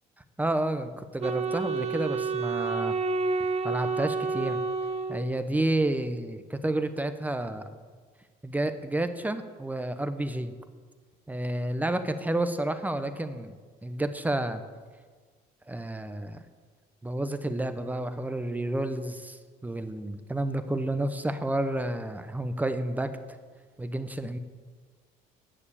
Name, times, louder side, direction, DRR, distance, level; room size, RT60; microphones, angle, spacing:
voice 1, 0.4-2.9 3.6-4.6 5.1-7.7 8.4-10.5 11.3-13.5 13.8-14.6 15.7-16.4 17.0-23.1 23.8-24.4, right 1 dB, 10° right, 10 dB, 0.8 m, -30 dB
Wind instrument woodwind instrument, 1.2-5.6, right 4 dB, 40° right, 0.8 m, -30 dB
10.0 x 6.7 x 8.4 m, 1.5 s
cardioid pair, 110°, 17 cm